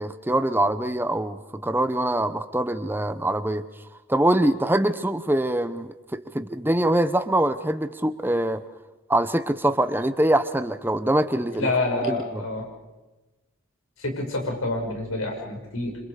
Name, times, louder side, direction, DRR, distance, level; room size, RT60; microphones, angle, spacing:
voice 1, 0.0-3.6 4.1-8.6 9.1-12.4, right 1 dB, 10° right, 11 dB, 0.9 m, -24 dB
voice 2, 11.6-12.7 14.0-16.0, left 2 dB, 85° left, 2 dB, 5.9 m, -27 dB
29.5 x 26.0 x 5.0 m, 1.1 s
head